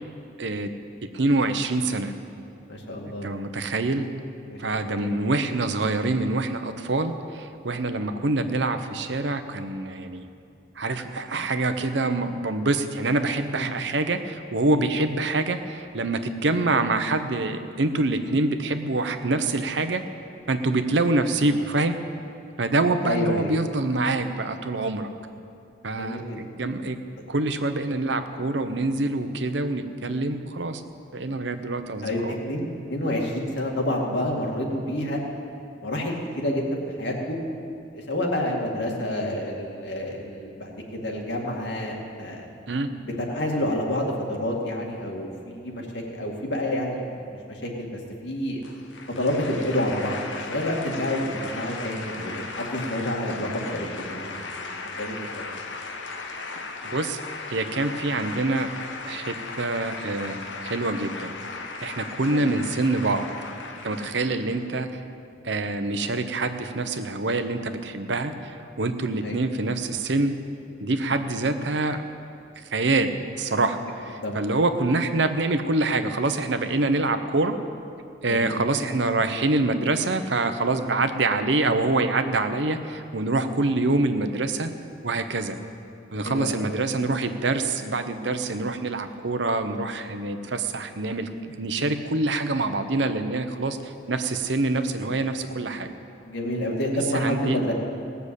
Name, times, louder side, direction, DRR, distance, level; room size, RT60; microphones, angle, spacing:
voice 1, 0.4-0.7 1.1-2.1 3.0-4.1 4.6-10.2 10.8-20.0 20.5-22.0 22.6-25.1 25.8-27.0 27.3-30.8 31.1-32.3 42.7-42.9 56.8-57.2 57.5-58.7 59.1-61.3 61.8-63.3 63.8-65.0 65.4-70.3 70.8-72.0 72.7-77.6 78.2-84.7 85.0-85.6 86.1-95.9 97.1-97.6, right 2 dB, 70° right, 8 dB, 0.9 m, -25 dB
voice 2, 2.7-3.3 4.5-5.2 13.5-13.7 21.4-21.5 23.0-23.5 25.9-26.4 30.0-30.2 32.0-35.2 35.8-37.4 37.9-42.5 42.9-48.6 49.2-55.4 62.3-62.5 69.2-69.4 71.0-71.2 74.2-74.5 78.3-78.6 86.2-86.6 96.3-97.7, left 1 dB, 70° left, 0 dB, 2.2 m, -29 dB
sound 1, 48.6-64.7, left 3 dB, 85° left, 1.1 m, -37 dB
18.5 x 6.9 x 8.3 m, 2.5 s
head